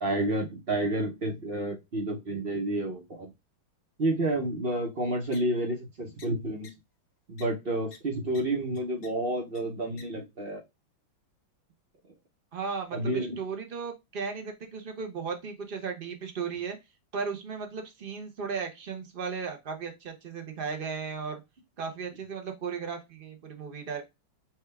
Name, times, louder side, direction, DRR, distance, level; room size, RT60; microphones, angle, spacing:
voice 1, 0.0-3.3 4.0-6.7 7.3-10.6 12.9-13.4, right 1 dB, 40° right, 0.8 m, -30 dB
sound 1, 5.3-5.4 6.2-6.3 6.6-6.7 7.4-7.5 7.9-8.0 8.3-8.4 8.7-9.1 9.5-9.6 10.0-10.1, left 5 dB, 55° left, 1.3 m, -49 dB
voice 2, 12.5-16.8 17.1-21.4 21.8-24.0, right 5 dB, 70° right, 0.5 m, -36 dB
6.1 x 2.4 x 3.4 m
omnidirectional pair, 2.2 m